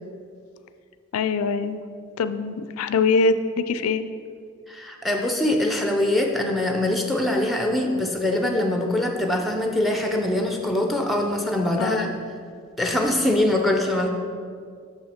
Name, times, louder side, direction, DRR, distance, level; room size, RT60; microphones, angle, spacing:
voice 1, 1.1-1.8 2.2-4.0 11.8-12.1, left 4 dB, 85° left, 11 dB, 0.4 m, -23 dB
voice 2, 4.7-12.1 12.8-14.1, left 1 dB, ahead, 3 dB, 0.5 m, -23 dB
6.7 x 5.6 x 4.3 m, 2.2 s
head